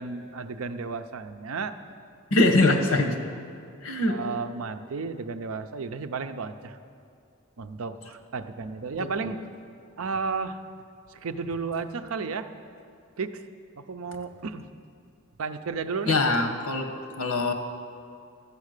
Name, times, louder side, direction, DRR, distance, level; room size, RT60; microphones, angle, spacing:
voice 1, 0.0-1.8 2.6-2.8 4.1-6.8 7.6-9.4 10.0-10.6 11.1-12.5 13.2-13.4 13.8-14.7 15.4-16.2, right 4 dB, 85° right, 9 dB, 0.6 m, -33 dB
voice 2, 2.3-3.1 3.8-4.2 16.1-16.9 17.2-17.5, left 2 dB, 85° left, 4 dB, 1.2 m, -22 dB
12.5 x 8.4 x 6.6 m, 2.4 s
head